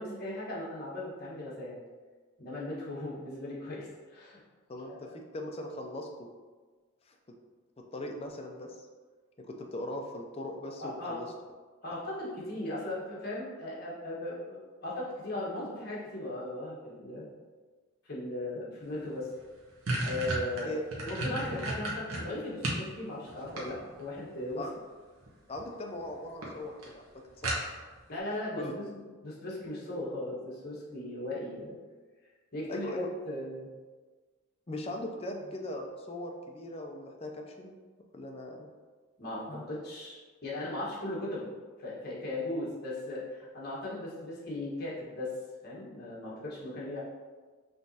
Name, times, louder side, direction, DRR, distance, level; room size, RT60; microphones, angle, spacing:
voice 1, 0.0-1.8 2.4-4.4 4.9-5.1 10.8-11.2 11.8-17.3 18.0-19.3 20.0-20.7 21.0-24.6 28.1-28.9 29.2-31.8 32.5-33.7 39.2-41.5 41.8-45.3 45.6-47.0, left 1 dB, 45° left, -6 dB, 1.3 m, -37 dB
voice 2, 4.7-6.3 7.9-8.9 9.4-11.3 20.6-20.8 24.6-24.7 25.5-27.7 28.3-28.7 32.7-33.1 34.7-37.8 38.1-38.7 39.5-39.6, left 1 dB, 25° left, 2 dB, 0.4 m, -39 dB
sound 1, 19.0-19.1 19.4-22.9 23.3-24.1 25.2-25.6 26.0-26.1 26.4-26.5 26.8-26.9 27.4-28.0, right 2 dB, 75° right, 1.0 m, -33 dB
5.5 x 3.0 x 2.7 m, 1.4 s
head